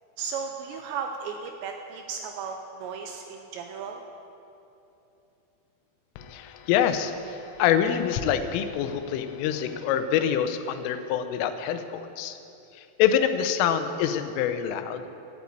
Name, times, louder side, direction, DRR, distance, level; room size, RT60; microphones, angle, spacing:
voice 1, 0.2-4.0, right 6 dB, 85° right, 4 dB, 2.6 m, -35 dB
voice 2, 6.2-12.4 12.8-15.1, left 9 dB, 90° left, 9 dB, 3.3 m, -26 dB
12.5 x 8.4 x 8.4 m, 2.8 s
omnidirectional pair, 5.6 m